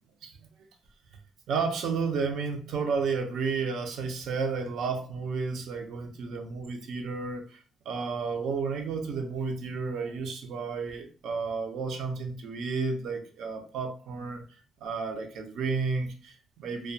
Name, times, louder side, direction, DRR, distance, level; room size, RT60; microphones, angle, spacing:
voice 1, 1.5-14.4 14.8-16.9, right 5 dB, 75° right, 0.5 m, -32 dB
2.2 x 2.2 x 2.6 m
cardioid pair, 90°, 0 cm